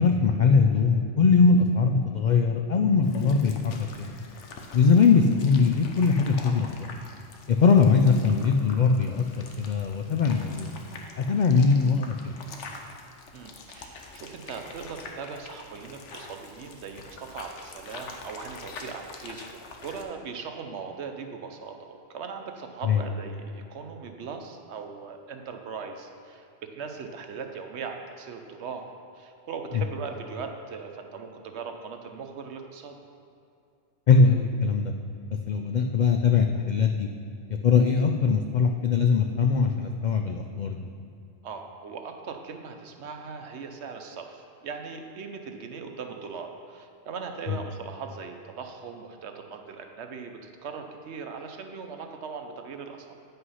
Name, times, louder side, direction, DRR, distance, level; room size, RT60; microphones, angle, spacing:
voice 1, 0.0-4.1 4.7-6.7 7.5-10.7 11.2-12.3 22.8-23.0 29.7-29.8 34.1-34.9 35.5-37.1 37.5-40.9 47.5-47.6, left 5 dB, 60° left, 4 dB, 0.5 m, -21 dB
sound 1, 3.0-20.0, left 3 dB, 80° left, 1.2 m, -45 dB
voice 2, 13.3-19.4 19.8-33.0 41.4-53.1, right 5 dB, 70° right, 5 dB, 1.0 m, -39 dB
9.6 x 5.6 x 5.6 m, 2.5 s
omnidirectional pair, 1.2 m